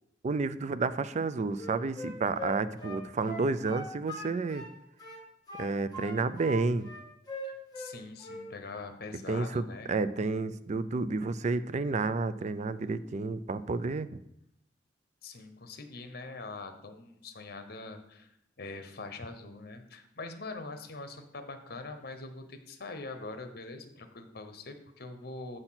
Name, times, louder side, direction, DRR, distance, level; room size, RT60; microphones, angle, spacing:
voice 1, 0.2-4.6 5.6-6.9 9.3-14.2, right 3 dB, 40° right, 13 dB, 0.4 m, -31 dB
Wind instrument woodwind instrument, 1.5-4.7 5.0-6.6 6.8-7.9 8.2-8.5, equal, 25° left, 1.7 m, -41 dB
voice 2, 7.4-9.9 15.2-18.3 18.6-25.6, left 3 dB, 60° left, 7 dB, 0.9 m, -43 dB
7.8 x 4.4 x 5.7 m, 0.78 s
head